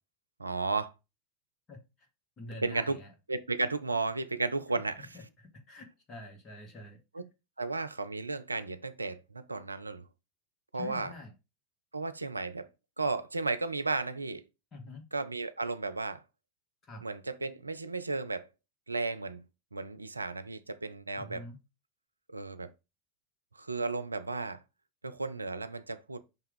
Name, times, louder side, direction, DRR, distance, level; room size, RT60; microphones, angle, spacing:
voice 1, 0.4-0.9 2.6-3.0 3.3-5.1 7.1-7.2 7.6-10.1 10.7-11.1 11.9-12.7 13.0-14.4 15.1-16.2 17.0-18.5 18.9-19.4 19.7-21.4 22.3-22.7 23.6-24.6 25.0-26.2, right 3 dB, 90° right, 0.4 m, -34 dB
voice 2, 1.7-2.1 2.4-3.1 5.0-7.0 10.7-11.3 14.7-15.1 16.8-17.0 21.2-21.6, left 1 dB, 35° left, 1.9 m, -47 dB
5.5 x 3.4 x 5.3 m
figure-of-eight pair, 85°, 0 cm